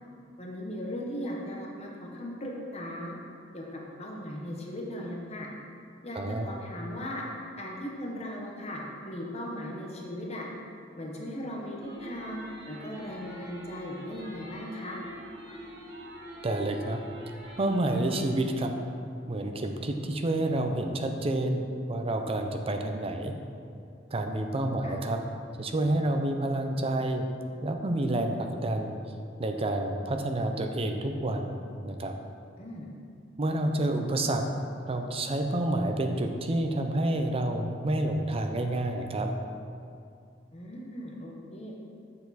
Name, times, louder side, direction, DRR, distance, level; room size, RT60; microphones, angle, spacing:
voice 1, 0.4-3.1 3.5-5.5 6.0-7.2 7.6-10.4 11.0-12.4 12.7-15.0 24.8-25.0 32.6-32.9 40.5-41.7, equal, 35° left, -2 dB, 1.0 m, -38 dB
voice 2, 6.1-6.5 16.4-17.0 17.6-18.7 19.3-21.6 21.9-23.3 24.1-25.2 25.6-27.2 27.6-29.0 29.4-32.1 33.4-34.4 34.9-39.3, right 1 dB, 30° right, 4 dB, 0.5 m, -29 dB
sound 1, 11.8-18.2, right 1 dB, 70° right, 1.6 m, -44 dB
6.9 x 6.8 x 4.1 m, 2.5 s
head